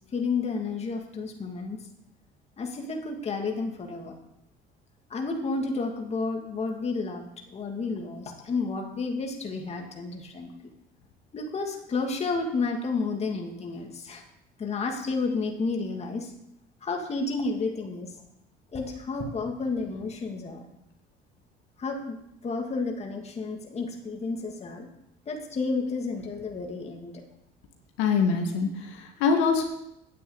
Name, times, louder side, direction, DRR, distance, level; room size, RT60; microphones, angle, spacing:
voice 1, 0.1-1.8 2.6-4.1 5.1-10.5 11.3-14.2 14.6-16.3 16.8-18.2 18.7-20.7 21.8-22.2 22.4-24.9 25.3-27.2, left 3 dB, 35° left, 2 dB, 2.4 m, -31 dB
voice 2, 28.0-29.6, left 5 dB, 85° left, 3 dB, 2.1 m, -24 dB
10.0 x 7.7 x 8.1 m, 0.81 s
cardioid pair, 105°, 19 cm